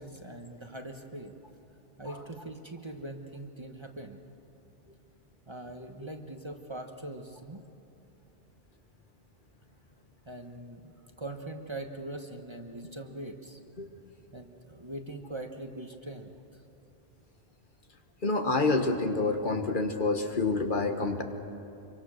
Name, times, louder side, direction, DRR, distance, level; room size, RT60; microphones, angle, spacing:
voice 1, 0.0-1.3 2.0-4.2 5.5-7.6 10.2-13.6 14.3-16.3, right 1 dB, 25° right, 4 dB, 1.2 m, -42 dB
voice 2, 18.2-21.2, left 3 dB, 50° left, 4 dB, 1.6 m, -27 dB
26.0 x 24.0 x 6.5 m, 2.8 s
omnidirectional pair, 1.1 m